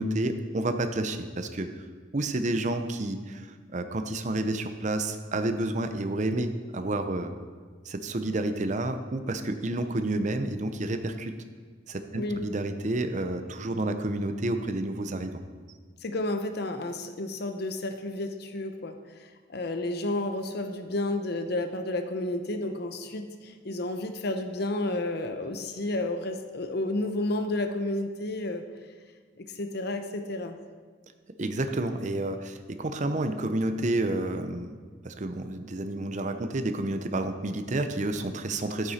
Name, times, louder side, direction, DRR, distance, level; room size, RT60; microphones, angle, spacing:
voice 1, 0.0-1.8 2.1-7.3 7.8-11.4 11.9-15.4 31.4-34.8 35.0-38.9, right 2 dB, 40° right, 8 dB, 0.6 m, -30 dB
voice 2, 12.1-12.4 16.0-28.6 29.4-30.6, left 2 dB, 55° left, 7 dB, 0.7 m, -31 dB
12.0 x 9.0 x 4.2 m, 1.5 s
head